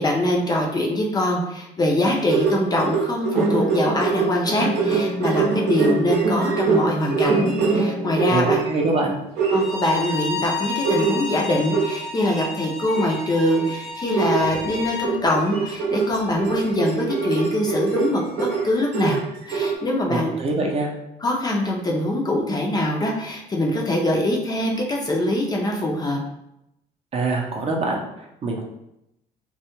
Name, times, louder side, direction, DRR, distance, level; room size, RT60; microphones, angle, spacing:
voice 1, 0.0-8.6 9.5-19.2 19.5-20.3 21.2-26.2, left 1 dB, 25° left, -1 dB, 0.4 m, -23 dB
sound 1, 2.0-8.9 9.4-10.0 10.6-12.5 12.9-13.2 13.5-13.7 14.1-19.8, right 4 dB, 85° right, 0.7 m, -24 dB
voice 2, 8.3-9.2 20.1-20.9 27.1-28.6, right 3 dB, 35° right, 0 dB, 0.5 m, -24 dB
Bowed string instrument, 9.5-15.1, left 3 dB, 90° left, 0.5 m, -31 dB
2.2 x 2.0 x 2.9 m, 0.83 s
cardioid pair, 110°, 17 cm